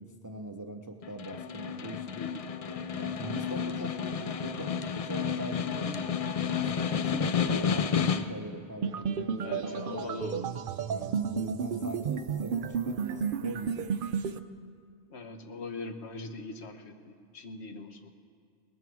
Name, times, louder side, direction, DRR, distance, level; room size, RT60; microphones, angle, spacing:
voice 1, 0.0-2.2 2.6-6.1 6.5-10.2 10.9-13.9, right 2 dB, 25° right, 5 dB, 0.5 m, -41 dB
Snare drum, 1.0-8.5, left 7 dB, 55° left, 0.4 m, -31 dB
sound 1, 8.8-14.4, right 6 dB, 60° right, 0.6 m, -32 dB
voice 2, 9.4-10.5 15.1-18.1, left 3 dB, 75° left, 7 dB, 1.2 m, -41 dB
18.5 x 13.0 x 4.7 m, 2.1 s
omnidirectional pair, 1.1 m